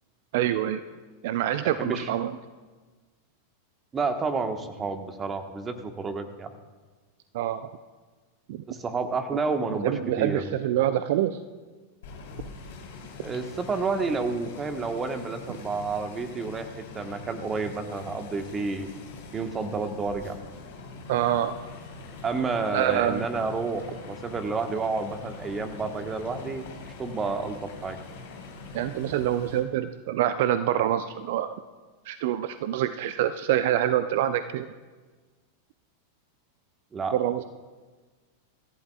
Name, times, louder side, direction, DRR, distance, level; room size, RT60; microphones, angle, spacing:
voice 1, 0.3-0.8 1.2-2.3 7.3-7.7 8.5-8.6 9.8-11.4 21.1-21.5 22.7-23.3 28.7-31.5 32.0-34.7 37.1-37.4, right 11 dB, 50° right, 12 dB, 0.5 m, -26 dB
voice 2, 3.9-6.5 8.7-10.5 13.2-18.9 19.3-20.4 22.2-26.6 27.0-28.0 36.9-37.2, right 4 dB, 20° right, 7 dB, 1.4 m, -30 dB
sound 1, 12.0-29.6, left 4 dB, 55° left, 3.8 m, -43 dB
25.5 x 14.5 x 2.4 m, 1.4 s
figure-of-eight pair, 90°, 0 cm